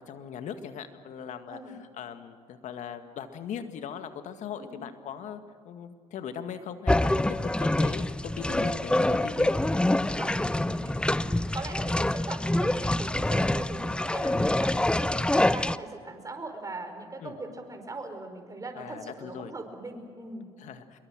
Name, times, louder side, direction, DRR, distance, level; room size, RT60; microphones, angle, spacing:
voice 1, 0.0-9.5 14.2-14.4 17.2-17.3 18.8-19.5 20.6-21.0, left 8 dB, 60° left, 8 dB, 1.9 m, -39 dB
sound 1, 6.9-15.8, left 1 dB, 5° left, 0.6 m, -26 dB
voice 2, 10.2-20.5, right 2 dB, 25° right, 6 dB, 5.0 m, -40 dB
25.5 x 22.5 x 6.3 m, 2.1 s
hypercardioid pair, 60°, 14 cm